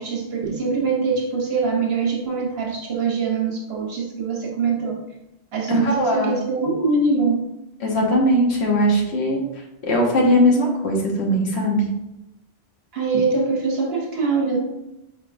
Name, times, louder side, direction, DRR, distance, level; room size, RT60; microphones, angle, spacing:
voice 1, 0.0-5.0 5.5-7.4 12.9-14.6, right 4 dB, 70° right, 0 dB, 1.1 m, -23 dB
voice 2, 5.7-6.4 7.8-9.4 9.8-11.8, equal, 75° left, -1 dB, 1.2 m, -19 dB
5.0 x 3.6 x 2.5 m, 0.92 s
omnidirectional pair, 1.1 m